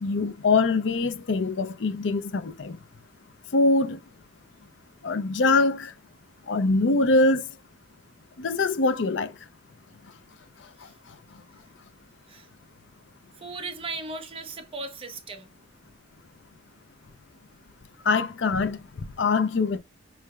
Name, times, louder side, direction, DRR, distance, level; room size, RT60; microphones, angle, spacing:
voice 1, 0.0-2.8 3.5-4.0 5.0-5.9 6.5-7.4 8.4-9.3 18.0-18.8 19.2-19.8, left 3 dB, 75° left, 0.5 m, -23 dB
voice 2, 13.4-15.5, right 3 dB, 30° right, 0.8 m, -36 dB
5.5 x 3.2 x 2.3 m
head